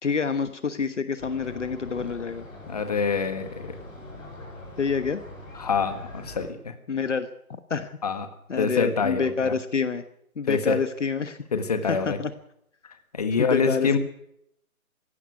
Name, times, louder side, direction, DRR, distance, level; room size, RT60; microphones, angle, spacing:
voice 1, 0.0-2.4 4.8-5.2 6.9-8.0 8.5-10.0 10.4-11.4 11.8-12.3 13.4-14.0, left 5 dB, 55° left, 11 dB, 1.2 m, -27 dB
sound 1, 1.2-6.5, left 1 dB, 10° left, 6.6 m, -42 dB
voice 2, 2.7-3.5 5.5-6.7 8.0-8.3 8.6-9.5 10.5-10.8 11.5-12.2 13.1-14.0, left 5 dB, 25° left, 8 dB, 1.5 m, -25 dB
17.0 x 16.5 x 9.5 m, 0.74 s
hypercardioid pair, 175°, 43 cm